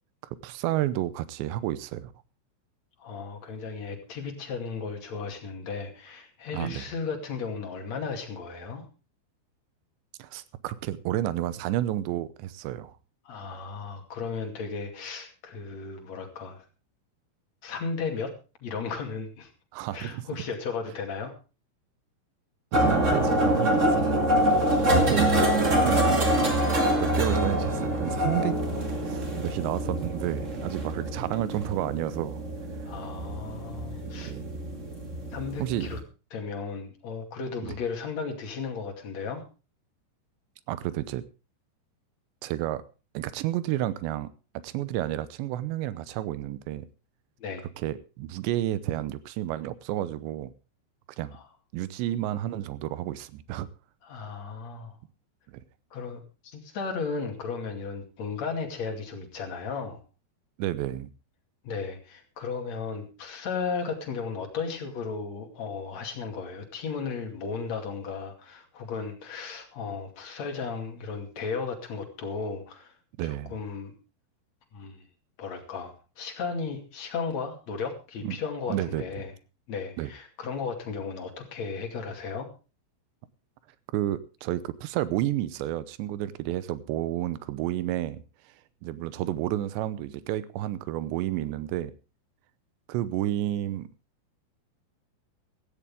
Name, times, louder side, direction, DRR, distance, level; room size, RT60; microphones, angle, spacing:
voice 1, 0.4-2.1 6.5-6.9 10.2-12.9 19.7-20.3 22.7-24.2 25.1-25.3 25.8-26.5 27.0-28.6 29.0-32.4 34.1-34.5 35.6-35.9 37.6-37.8 40.7-41.2 42.4-42.8 43.1-46.9 47.8-50.5 51.2-51.4 51.7-53.7 60.6-61.1 73.2-73.5 78.2-78.4 78.7-79.0 80.0-80.1 83.9-88.2 88.8-91.9 92.9-93.9, right 13 dB, 85° right, 3.1 m, -31 dB
voice 2, 3.0-8.8 13.2-16.6 17.6-18.3 18.6-19.5 19.9-21.3 32.8-34.3 35.3-36.0 36.3-39.4 47.4-47.7 51.3-51.5 54.0-55.0 55.9-60.0 61.6-72.9 73.2-73.9 74.7-75.0 75.4-79.3 79.7-82.5, left 5 dB, 45° left, 3.1 m, -35 dB
sound 1, 22.7-36.0, right 1 dB, 35° right, 1.1 m, -25 dB
16.0 x 14.0 x 3.6 m
omnidirectional pair, 5.1 m